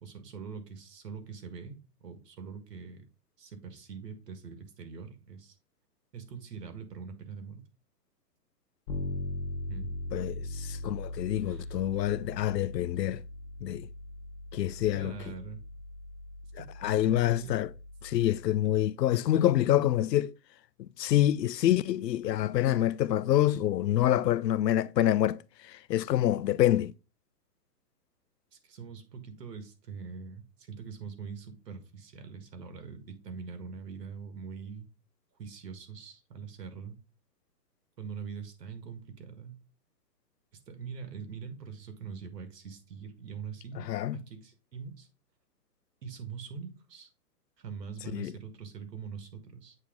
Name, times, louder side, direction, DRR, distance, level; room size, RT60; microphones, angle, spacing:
voice 1, 0.0-3.0 3.4-5.6 6.1-7.6 9.7-10.0 11.4-11.7 14.9-15.6 16.9-17.6 28.5-34.9 35.4-37.0 38.0-39.6 40.7-43.9 44.1-45.1 46.0-47.1 47.6-49.8, right 6 dB, 75° right, 1.8 m, -43 dB
Bass guitar, 8.9-18.6, left 1 dB, 30° left, 1.3 m, -40 dB
voice 2, 10.1-13.2 13.6-13.9 14.5-15.1 16.5-17.7 18.0-20.3 20.8-26.9 43.8-44.2 48.1-48.3, left 12 dB, 85° left, 0.6 m, -27 dB
8.5 x 3.1 x 3.7 m
hypercardioid pair, 155°, 49 cm